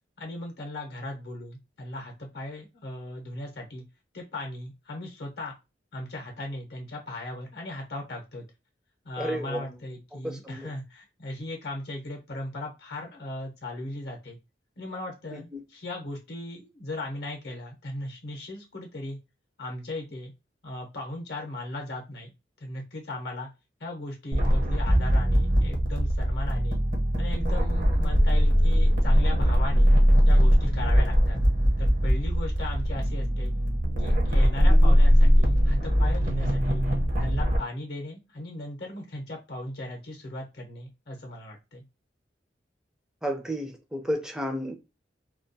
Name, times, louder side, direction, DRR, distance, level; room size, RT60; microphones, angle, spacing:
voice 1, 0.2-3.8 4.1-5.5 5.9-8.4 9.0-14.4 14.8-19.2 19.6-20.3 20.6-22.3 22.6-23.5 23.8-26.8 27.2-29.9 30.3-31.4 31.8-33.5 34.0-36.8 37.2-41.8, left 1 dB, 65° left, 0.7 m, -37 dB
voice 2, 9.2-9.8 10.1-10.7 15.3-15.6 34.7-35.0 43.2-44.7, equal, 5° right, 0.4 m, -32 dB
sound 1, 24.3-37.6, equal, 45° right, 0.7 m, -21 dB
2.2 x 2.2 x 2.5 m
head